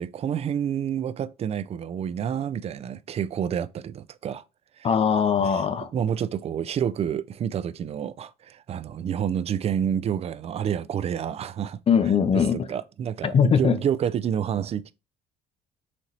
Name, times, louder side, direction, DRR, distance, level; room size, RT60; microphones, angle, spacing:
voice 1, 0.0-4.4 4.8-4.9 5.4-11.8 12.3-14.9, right 8 dB, 40° right, 0.4 m, -29 dB
voice 2, 4.8-5.9 11.9-12.7 13.2-13.8, left 7 dB, 35° left, 0.6 m, -21 dB
4.2 x 3.0 x 3.9 m
cardioid pair, 110°, 17 cm